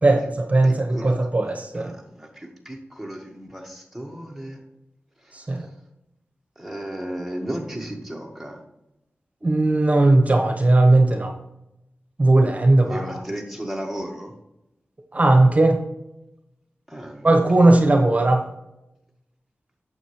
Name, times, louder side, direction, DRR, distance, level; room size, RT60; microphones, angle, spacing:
voice 1, 0.0-1.9 5.3-5.6 9.4-11.3 12.2-13.2 15.1-15.8 17.2-18.4, right 2 dB, 35° right, 4 dB, 1.2 m, -17 dB
voice 2, 0.6-1.1 1.7-4.6 5.2-5.6 6.5-8.6 12.9-14.3 16.9-17.3 17.6-17.7, right 1 dB, 5° right, 0 dB, 1.7 m, -34 dB
8.9 x 7.1 x 3.3 m, 0.89 s
wide cardioid pair, 80°, 4 cm